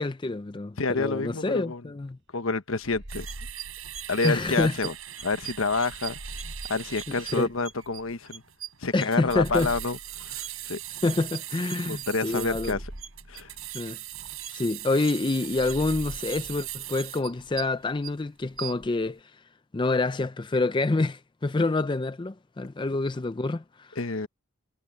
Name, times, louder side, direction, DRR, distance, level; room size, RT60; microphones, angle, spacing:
voice 1, 0.0-2.2 4.2-4.7 7.3-7.5 8.9-9.7 11.0-12.8 13.7-14.0 14.5-19.2 19.7-24.0, left 2 dB, 20° left, 0.4 m, -27 dB
voice 2, 0.8-1.8 2.3-3.3 4.1-4.9 5.2-6.2 6.7-8.4 8.8-10.8 11.9-12.8 13.3-13.5 24.0-24.3, left 3 dB, 75° left, 1.2 m, -28 dB
sound 1, 2.8-5.0 6.0-8.1 9.1-11.5 12.3-14.5 15.5-17.6, right 1 dB, 55° right, 2.0 m, -44 dB
sound 2, 3.1-18.1 18.5-18.9, right 12 dB, 90° right, 4.8 m, -39 dB
head